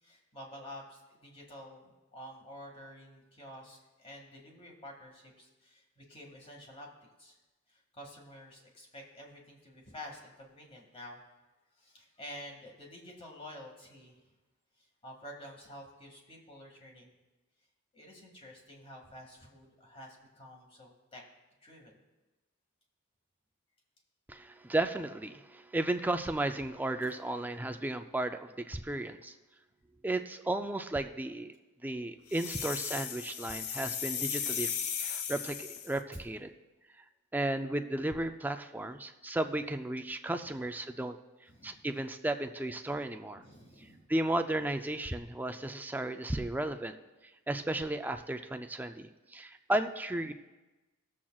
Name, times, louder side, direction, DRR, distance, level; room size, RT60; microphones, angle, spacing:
voice 1, 0.0-6.9 7.2-7.4 7.7-11.2 11.8-14.2 14.8-17.1 17.9-21.2 21.6-22.0 40.4-40.6 41.5-41.8 43.4-44.0, equal, 25° left, 0 dB, 1.9 m, -50 dB
voice 2, 24.3-29.3 30.0-31.5 31.8-34.7 35.0-36.5 37.3-41.2 41.6-43.4 44.1-47.0 47.5-50.3, right 1 dB, 10° right, 7 dB, 0.4 m, -34 dB
sound 1, 32.3-36.0, left 7 dB, 90° left, 0.7 m, -36 dB
21.0 x 7.3 x 2.3 m, 1.1 s
head